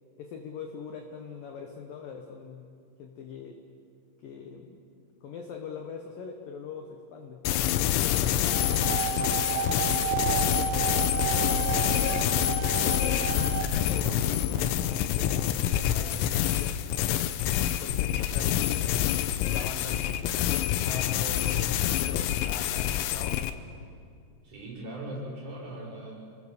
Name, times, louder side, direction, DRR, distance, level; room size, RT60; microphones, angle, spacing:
voice 1, 0.2-2.7 3.0-3.6 4.2-4.8 5.2-7.4 8.0-11.8 12.3-16.8 17.8-23.4, left 6 dB, 65° left, 4 dB, 2.3 m, -42 dB
sound 1, 7.5-23.5, left 11 dB, 85° left, 3.2 m, -27 dB
sound 2, 8.5-14.9, right 9 dB, 75° right, 1.9 m, -32 dB
voice 2, 24.4-26.1, right 1 dB, 40° right, -4 dB, 7.2 m, -39 dB
28.0 x 20.0 x 6.9 m, 2.3 s
omnidirectional pair, 5.5 m